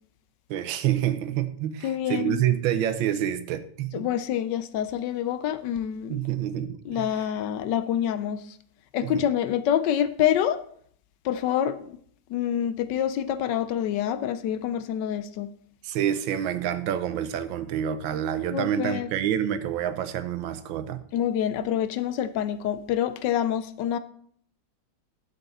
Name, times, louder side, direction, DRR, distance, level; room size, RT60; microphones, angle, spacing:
voice 1, 0.5-4.1 6.1-7.2 9.0-9.3 15.8-21.0, right 10 dB, 85° right, 1.5 m, -28 dB
voice 2, 1.8-2.4 3.9-6.2 6.9-8.4 8.9-10.6 11.2-12.0 12.3-15.5 18.5-19.1 21.1-24.0, left 10 dB, 75° left, 1.2 m, -27 dB
11.0 x 7.3 x 4.0 m
omnidirectional pair, 2.1 m